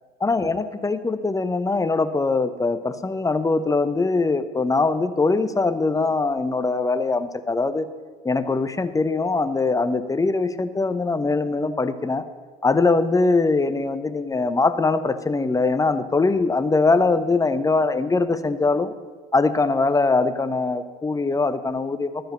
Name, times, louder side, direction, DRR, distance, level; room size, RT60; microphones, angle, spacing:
voice 1, 0.2-7.9 8.2-12.3 12.6-18.9 19.3-22.3, left 3 dB, 15° left, 12 dB, 0.8 m, -22 dB
12.5 x 7.9 x 6.7 m, 1.5 s
hypercardioid pair, 70°, 21 cm